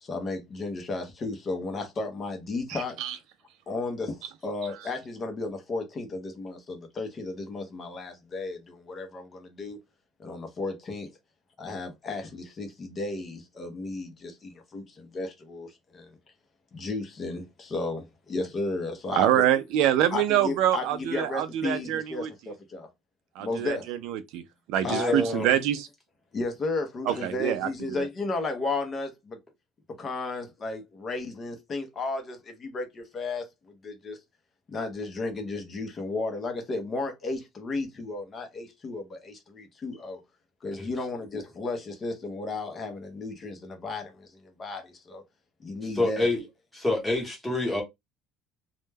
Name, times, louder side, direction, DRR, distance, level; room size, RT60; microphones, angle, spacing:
voice 1, 0.0-3.1 3.7-9.8 10.2-11.1 11.6-16.2 16.7-19.4 20.1-22.9 23.4-23.9 24.8-25.2 26.3-29.4 30.0-34.2 34.7-40.2 40.6-45.2 45.6-46.3, left 3 dB, 25° left, 0.5 m, -34 dB
voice 2, 2.7-3.2 19.2-22.3 23.4-24.4 24.7-25.9 27.1-27.7 28.0-28.1, right 11 dB, 60° right, 0.3 m, -25 dB
voice 3, 24.8-25.5 40.8-40.9 46.0-46.4 46.7-47.8, left 2 dB, 5° left, 0.9 m, -27 dB
2.1 x 2.0 x 3.2 m
cardioid pair, 175°, 0 cm